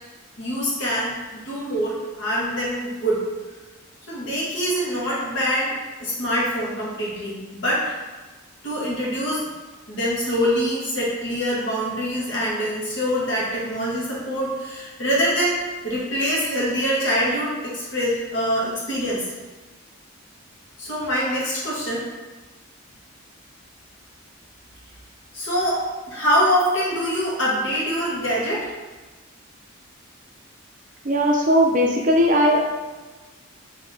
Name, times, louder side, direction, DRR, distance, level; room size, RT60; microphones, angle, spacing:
voice 1, 0.4-3.3 4.1-7.9 8.6-9.5 9.9-19.3 20.8-22.1 25.3-28.7, equal, 55° left, -6 dB, 1.3 m, -24 dB
voice 2, 31.0-32.6, equal, 40° right, 0 dB, 0.5 m, -18 dB
5.5 x 2.8 x 2.7 m, 1.2 s
head